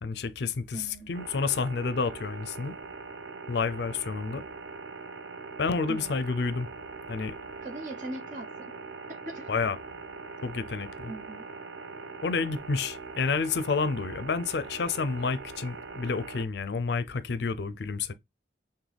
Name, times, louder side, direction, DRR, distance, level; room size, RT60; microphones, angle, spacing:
voice 1, 0.0-2.7 3.5-4.4 5.6-6.7 7.1-7.3 9.5-9.8 10.4-11.1 12.2-18.1, left 4 dB, 65° left, 0.4 m, -30 dB
voice 2, 0.7-1.1 5.9-6.2 7.6-8.8 9.2-9.5 11.1-11.4, right 2 dB, 45° right, 0.9 m, -40 dB
sound 1, 1.1-16.4, right 4 dB, 90° right, 0.6 m, -42 dB
5.9 x 2.2 x 3.3 m
head